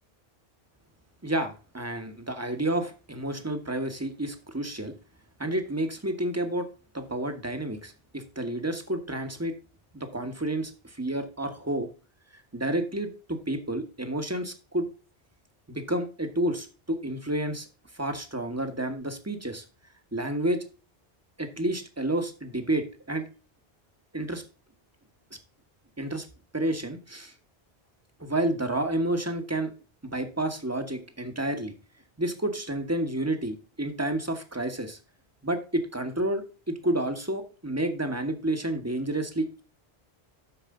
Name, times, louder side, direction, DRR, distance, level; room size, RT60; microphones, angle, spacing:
voice 1, 1.2-4.9 5.4-6.7 6.9-9.5 9.9-11.9 12.5-14.9 15.7-17.7 17.9-19.6 20.1-20.6 21.4-23.3 24.1-24.4 26.0-26.3 26.5-27.3 28.2-29.7 30.0-31.7 32.2-35.0 35.4-39.6, right 1 dB, 15° right, 7 dB, 1.2 m, -30 dB
13.0 x 4.9 x 3.7 m, 0.33 s
omnidirectional pair, 1.1 m